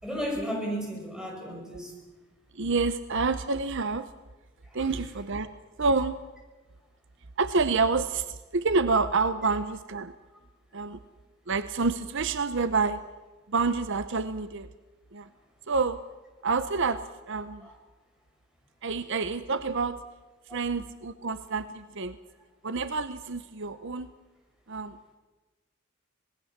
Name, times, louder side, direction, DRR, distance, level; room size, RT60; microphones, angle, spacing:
voice 1, 0.0-2.0 4.7-4.9 17.6-17.7 20.5-20.7, equal, 5° right, -1 dB, 6.5 m, -34 dB
voice 2, 2.5-4.1 4.7-5.5 5.8-6.2 7.4-10.1 10.7-11.0 11.5-13.0 13.5-14.7 15.1-15.3 15.7-16.0 16.4-17.7 18.8-20.0 20.5-22.2 22.6-24.1 24.7-25.1, right 4 dB, 60° right, 12 dB, 0.9 m, -28 dB
26.5 x 19.0 x 7.4 m, 1.2 s
head